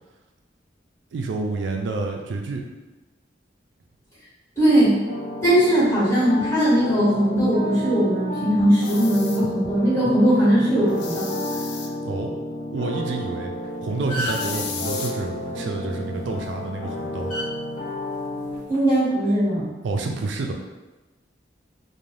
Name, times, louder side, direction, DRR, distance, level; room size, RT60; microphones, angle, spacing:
voice 1, 1.1-2.6 12.0-12.3 12.7-13.5 13.8-17.3 19.8-20.5, right 3 dB, 80° right, 2 dB, 0.4 m, -28 dB
voice 2, 4.6-4.9 5.4-11.2 18.7-19.7, right 1 dB, 15° left, -12 dB, 1.4 m, -19 dB
sound 1, 5.0-18.6, left 1 dB, 85° left, 1.0 m, -32 dB
sound 2, 8.7-9.4 10.9-11.9 14.2-15.1, left 5 dB, 65° left, 0.4 m, -34 dB
sound 3, 13.5-13.6 13.9-14.6 16.2-16.4 17.3-17.5 18.5-18.7, equal, 50° left, 1.1 m, -29 dB
2.6 x 2.2 x 3.2 m, 1.1 s
head